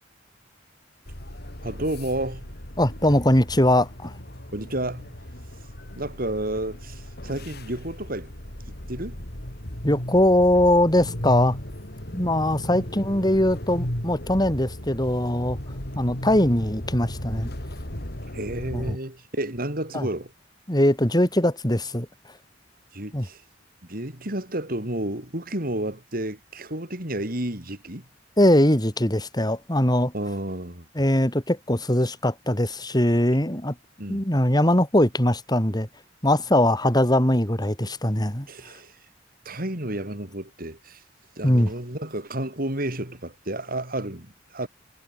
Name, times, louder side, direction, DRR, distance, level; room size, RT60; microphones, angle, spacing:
sound 1, 1.1-18.9, left 1 dB, 60° left, 4.2 m, -36 dB
voice 1, 1.6-2.5 4.5-5.1 6.0-8.3 8.7-9.2 12.7-12.9 18.3-20.3 22.9-23.4 23.9-28.0 30.1-30.9 34.0-34.2 38.5-38.9 39.4-41.0 41.4-44.7, right 1 dB, 50° right, 6.4 m, -31 dB
voice 2, 2.8-4.1 9.8-11.6 12.1-15.6 16.0-17.5 18.7-19.0 19.9-20.1 20.7-22.1 23.1-23.3 28.4-30.1 31.0-33.7 34.1-35.9 36.2-38.5 41.4-41.7, left 1 dB, 20° left, 5.2 m, -21 dB
head